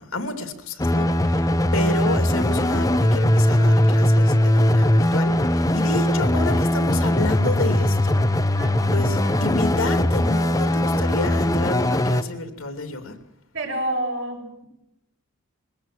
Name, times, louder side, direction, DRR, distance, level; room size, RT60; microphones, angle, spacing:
voice 1, 0.0-8.2 8.9-13.1, left 2 dB, 80° left, 7 dB, 2.8 m, -30 dB
sound 1, 0.8-12.2, left 1 dB, 15° left, 0.8 m, -20 dB
voice 2, 8.6-9.6 13.5-14.7, right 1 dB, 60° right, 2 dB, 6.0 m, -30 dB
22.0 x 18.5 x 7.7 m, 0.84 s
head